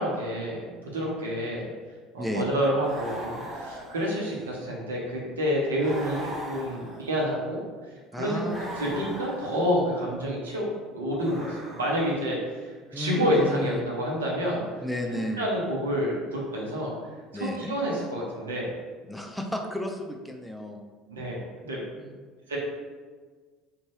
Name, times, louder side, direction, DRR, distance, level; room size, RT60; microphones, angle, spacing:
voice 1, 0.0-1.7 2.1-7.6 8.1-10.7 10.9-14.6 15.4-16.9 17.3-18.7 21.2-21.8 22.5-22.6, equal, 85° right, -4 dB, 0.7 m, -28 dB
voice 2, 2.2-2.5 8.1-8.7 12.9-13.8 14.8-15.5 17.3-17.7 19.0-20.8 22.0-22.2, left 1 dB, ahead, 2 dB, 0.4 m, -33 dB
sound 1, 2.8-4.6 5.8-7.3 8.4-9.8 11.2-12.3, right 1 dB, 25° right, 0.8 m, -39 dB
2.6 x 2.2 x 3.1 m, 1.5 s
figure-of-eight pair, 65°, 0 cm